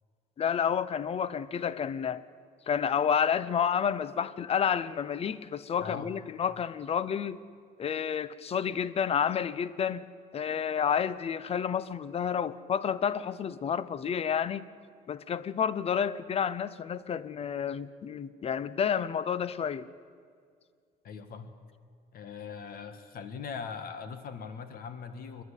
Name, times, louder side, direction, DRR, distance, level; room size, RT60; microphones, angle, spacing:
voice 1, 0.4-2.2 2.7-7.4 7.8-10.1 10.3-14.7 15.1-19.9, left 7 dB, 35° left, 0.7 m, -30 dB
voice 2, 5.8-6.1 21.0-21.5 22.1-25.4, left 6 dB, 60° left, 1.7 m, -40 dB
28.5 x 11.0 x 8.3 m
cardioid pair, 110°, 17 cm